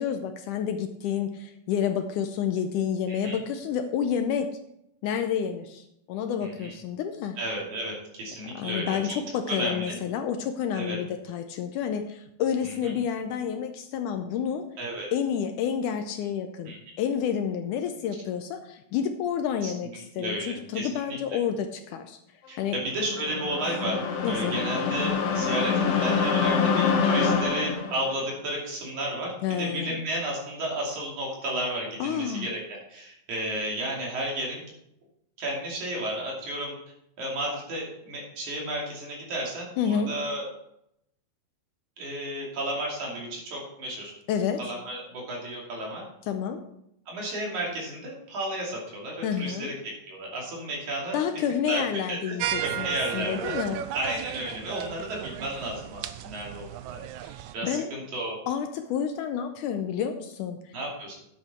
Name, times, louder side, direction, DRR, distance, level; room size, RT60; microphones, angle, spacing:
voice 1, 0.0-4.5 5.0-7.4 8.6-14.7 15.1-22.2 22.6-22.8 24.2-24.6 29.4-30.0 32.0-32.5 39.8-40.1 44.3-44.6 46.3-46.6 49.2-49.7 51.1-53.8 57.6-57.9 58.5-60.7, left 8 dB, 80° left, 7 dB, 2.0 m, -29 dB
voice 2, 6.4-6.7 7.4-9.2 9.5-10.0 10.7-11.0 12.6-12.7 14.8-15.1 16.7-16.8 19.6-19.7 20.2-21.2 22.5-24.0 24.3-34.6 35.4-36.7 37.2-40.5 42.0-44.1 44.6-46.0 47.1-51.2 51.7-51.8 52.1-53.6 53.9-57.0 57.5-58.4 60.7-61.1, right 1 dB, 60° right, -3 dB, 3.9 m, -33 dB
sound 1, 23.0-28.1, left 5 dB, 60° left, 1.7 m, -25 dB
sound 2, 52.4-57.5, right 11 dB, 85° right, 1.7 m, -34 dB
10.5 x 8.1 x 4.3 m, 0.77 s
omnidirectional pair, 4.0 m